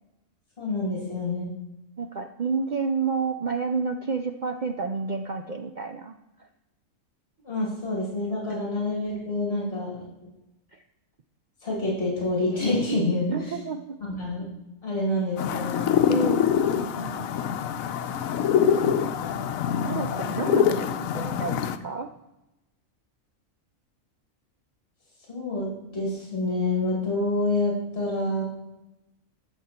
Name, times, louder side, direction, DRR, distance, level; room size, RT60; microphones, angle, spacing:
voice 1, 0.6-1.5 7.4-10.0 11.6-13.5 14.0-14.5 14.8-15.9 25.3-28.4, left 2 dB, 50° left, -3 dB, 2.9 m, -27 dB
voice 2, 2.0-6.5 10.7-10.8 13.3-14.0 16.1-17.3 18.6-19.3 19.9-22.1, right 5 dB, 60° right, 6 dB, 0.5 m, -31 dB
sound 1, 15.4-21.8, left 8 dB, 85° left, 1.1 m, -25 dB
11.5 x 6.9 x 4.3 m, 0.94 s
omnidirectional pair, 1.4 m